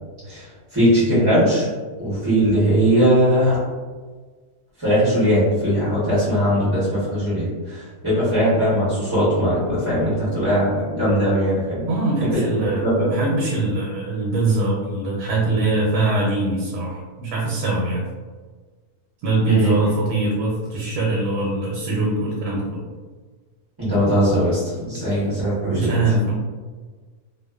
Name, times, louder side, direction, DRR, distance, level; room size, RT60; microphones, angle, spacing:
voice 1, 0.7-1.7 2.0-3.6 4.8-13.1 19.4-19.7 23.8-25.9, equal, 25° right, -11 dB, 0.5 m, -20 dB
voice 2, 11.9-18.0 19.2-22.8 25.7-26.3, right 2 dB, 80° right, -3 dB, 1.1 m, -22 dB
2.4 x 2.3 x 2.2 m, 1.4 s
omnidirectional pair, 1.7 m